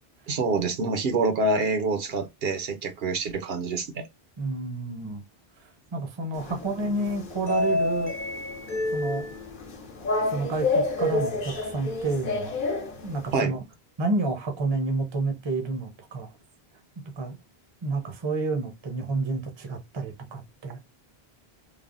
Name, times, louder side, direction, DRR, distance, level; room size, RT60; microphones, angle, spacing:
voice 1, 0.3-4.0 13.3-13.5, right 3 dB, 70° right, 0.8 m, -26 dB
voice 2, 4.4-5.2 5.9-8.1 8.7-9.3 10.3-12.6 13.0-13.6 14.0-16.3 17.2-17.4 17.8-20.8, right 3 dB, 30° right, 0.6 m, -30 dB
sound 1, 6.3-13.3, left 2 dB, 55° left, 0.8 m, -29 dB
3.3 x 2.1 x 2.4 m
omnidirectional pair, 1.1 m